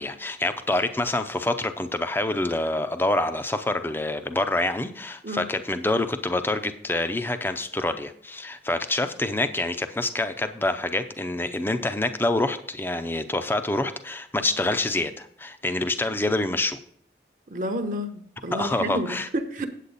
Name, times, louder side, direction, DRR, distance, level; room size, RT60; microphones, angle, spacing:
voice 1, 0.0-16.8 18.5-19.3, left 2 dB, 10° left, 0.5 m, -26 dB
voice 2, 17.5-19.7, equal, 45° right, 0.8 m, -30 dB
8.6 x 8.3 x 4.0 m
head